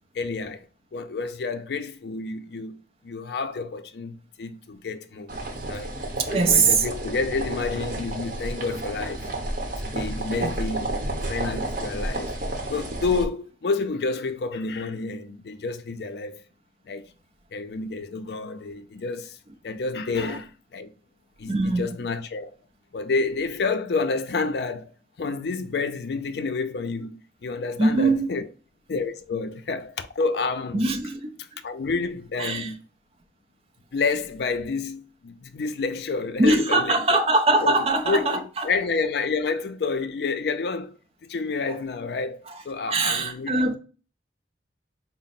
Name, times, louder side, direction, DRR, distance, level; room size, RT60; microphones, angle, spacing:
voice 1, 0.1-0.6 0.9-2.8 3.0-5.3 5.6-6.0 6.3-9.3 9.8-12.3 12.7-16.4 16.9-17.1 17.5-19.4 19.6-20.9 21.4-22.6 22.9-24.9 25.2-28.5 28.9-30.9 31.4-32.8 33.9-37.2 37.6-43.8, left 4 dB, 70° left, 0.4 m, -29 dB
sound 1, 5.3-13.2, right 1 dB, 50° right, 0.8 m, -31 dB
voice 2, 6.3-6.8 10.4-10.5 21.5-21.9 27.8-28.3 30.7-31.2 32.4-32.7 36.4-38.7 41.7-41.8 42.9-43.8, right 3 dB, 35° right, 0.5 m, -21 dB
4.0 x 2.0 x 4.0 m
head